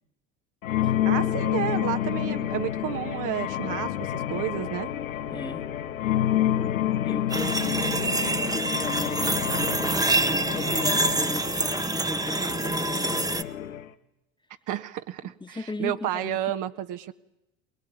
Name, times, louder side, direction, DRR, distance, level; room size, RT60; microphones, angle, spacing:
sound 1, 0.6-13.9, left 11 dB, 80° left, 1.4 m, -29 dB
voice 1, 1.0-4.9 7.7-8.0 14.7-17.1, right 12 dB, 50° right, 8 dB, 1.6 m, -31 dB
voice 2, 5.3-5.7 7.0-7.9 8.5-10.1 10.5-13.5 15.4-16.4, left 2 dB, 10° left, 8 dB, 1.7 m, -37 dB
sound 2, 7.3-13.4, right 2 dB, 10° right, 1.2 m, -26 dB
23.0 x 21.0 x 9.7 m, 0.86 s
hypercardioid pair, 75°, 39 cm